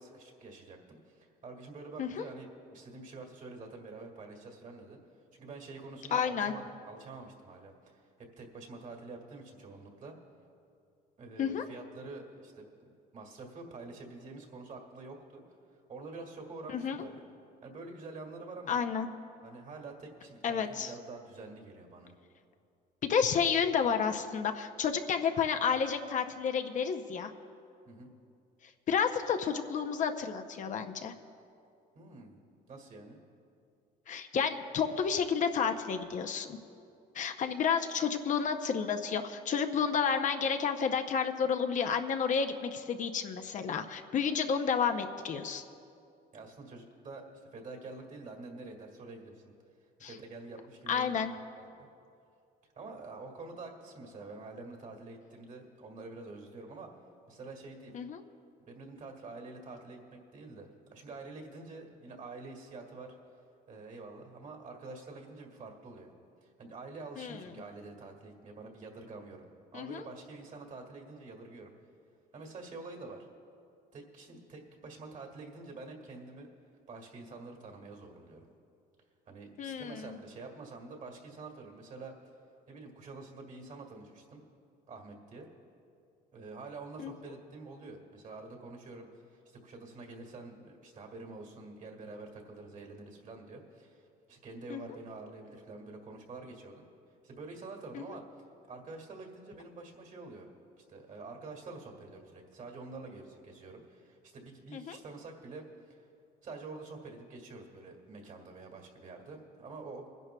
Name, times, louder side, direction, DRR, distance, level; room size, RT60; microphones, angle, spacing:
voice 1, 0.0-5.0 5.4-10.2 11.2-12.6 13.1-15.4 15.7-17.3 17.6-18.8 19.4-22.2 27.9-28.1 31.9-32.4 32.7-33.2 46.3-49.5 50.0-51.2 51.6-51.9 52.8-56.9 57.3-58.0 58.7-63.2 63.7-66.1 66.4-71.7 72.3-73.3 73.9-76.5 76.9-78.4 79.3-82.1 82.7-84.4 84.9-85.5 86.3-96.9 97.2-98.2 98.7-100.5 100.8-106.1 106.4-110.1, right 3 dB, 50° right, 2 dB, 2.0 m, -47 dB
voice 2, 6.1-6.5 11.4-11.6 16.7-17.0 18.7-19.1 20.4-20.9 23.0-27.3 28.9-31.1 34.1-36.6 37.1-45.6 50.0-50.1 50.9-51.3 57.9-58.2 67.2-67.4 69.7-70.1 79.6-80.2 87.0-87.1 94.7-94.8 97.9-98.1 104.7-105.0, left 6 dB, 50° left, 6 dB, 0.6 m, -31 dB
28.0 x 10.5 x 2.3 m, 2.5 s
cardioid pair, 110°, 17 cm